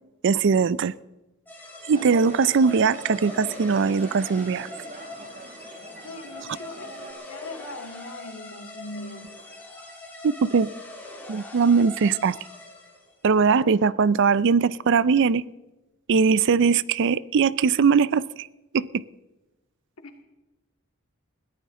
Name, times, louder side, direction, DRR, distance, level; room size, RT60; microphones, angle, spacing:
voice 1, 0.2-0.9 1.9-4.7 10.2-10.7 11.3-12.4 13.2-15.4 16.1-18.5 18.7-19.0, right 5 dB, 60° right, 20 dB, 0.4 m, -20 dB
sound 1, 1.5-13.1, left 2 dB, 10° left, 3.1 m, -42 dB
sound 2, 1.9-7.1, right 3 dB, 35° right, 1.2 m, -42 dB
voice 2, 6.0-9.4 20.0-20.2, left 2 dB, 85° left, 5 dB, 2.1 m, -40 dB
21.0 x 14.5 x 3.7 m, 1.1 s
head